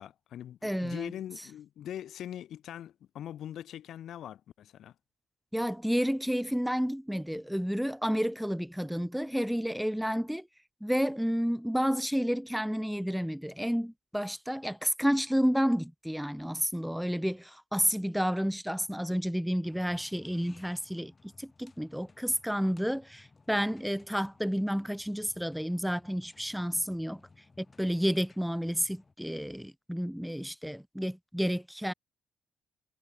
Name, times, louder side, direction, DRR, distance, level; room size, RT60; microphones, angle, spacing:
voice 1, 0.0-4.9, left 11 dB, 70° left, 0.7 m, -42 dB
voice 2, 0.6-1.1 5.5-10.5 10.8-21.1 21.4-27.2 27.6-31.9, equal, ahead, 0.3 m, -30 dB
sound 1, 19.6-29.1, left 3 dB, 25° left, 2.6 m, -60 dB
cardioid pair, 90°, 0 cm